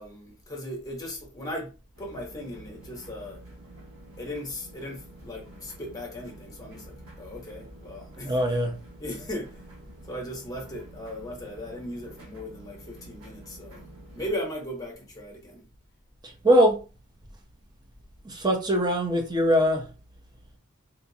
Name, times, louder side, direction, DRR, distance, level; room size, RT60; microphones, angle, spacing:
voice 1, 0.0-1.7 2.0-3.4 4.2-8.4 9.0-9.6 10.1-13.8 14.1-15.6, left 1 dB, 15° left, 0.9 m, -37 dB
sound 1, 1.9-14.3, right 1 dB, 70° right, 1.5 m, -48 dB
voice 2, 8.2-8.7 16.2-16.8 18.2-19.9, equal, 20° right, 0.6 m, -22 dB
3.9 x 2.4 x 2.7 m
head